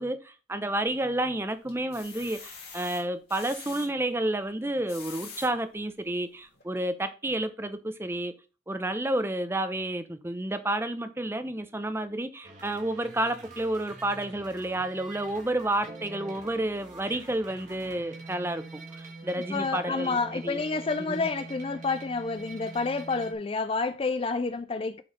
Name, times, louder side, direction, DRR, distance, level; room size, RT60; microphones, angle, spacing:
voice 1, 0.0-8.3 8.7-20.6 21.0-21.3, right 1 dB, 15° right, 0.7 m, -30 dB
sound 1, 0.6-1.2 1.7-3.9 4.7-5.5 6.1-6.2 6.5-6.6, left 5 dB, 55° left, 3.0 m, -44 dB
SQ Not So Fast Intro, 12.4-23.3, right 3 dB, 40° right, 1.8 m, -45 dB
voice 2, 19.5-25.0, left 4 dB, 30° left, 0.4 m, -29 dB
7.5 x 4.6 x 5.1 m
head